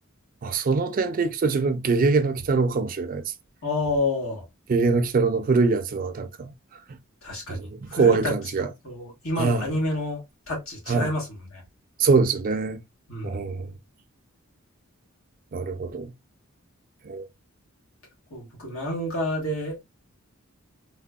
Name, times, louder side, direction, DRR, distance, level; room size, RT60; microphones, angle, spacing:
voice 1, 0.4-3.2 4.7-6.5 7.5-8.7 9.4-9.7 10.9-11.1 12.0-12.8 13.2-13.7 15.5-16.1 17.1-17.3, right 4 dB, 40° right, 0.4 m, -23 dB
voice 2, 3.6-4.4 7.2-8.3 8.6-10.2 10.5-11.6 13.1-13.4 18.3-19.8, left 2 dB, 75° left, 1.4 m, -29 dB
3.5 x 2.2 x 2.2 m
head